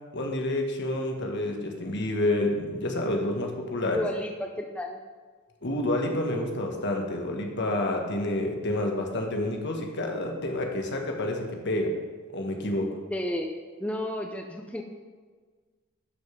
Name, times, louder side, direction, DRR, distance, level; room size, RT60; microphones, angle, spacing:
voice 1, 0.1-4.0 5.6-11.9 12.3-12.9, left 1 dB, 55° left, 2 dB, 1.4 m, -29 dB
voice 2, 3.9-5.0 13.1-13.5 13.8-14.8, left 1 dB, 5° left, 2 dB, 0.5 m, -32 dB
11.5 x 5.3 x 5.1 m, 1.5 s
head